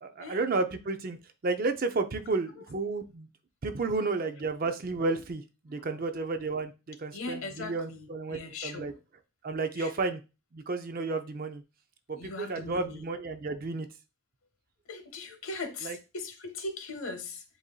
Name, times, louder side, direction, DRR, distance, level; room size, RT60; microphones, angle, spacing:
voice 1, 0.0-1.2 1.4-3.3 3.6-8.9 9.4-10.2 10.5-11.6 12.1-13.9 15.8-16.0, right 3 dB, 45° right, 8 dB, 0.5 m, -32 dB
voice 2, 5.7-6.0 7.1-9.0 9.8-9.9 12.1-13.1 14.9-17.4, left 3 dB, 85° left, 7 dB, 0.9 m, -40 dB
7.8 x 2.7 x 2.2 m, 0.29 s
head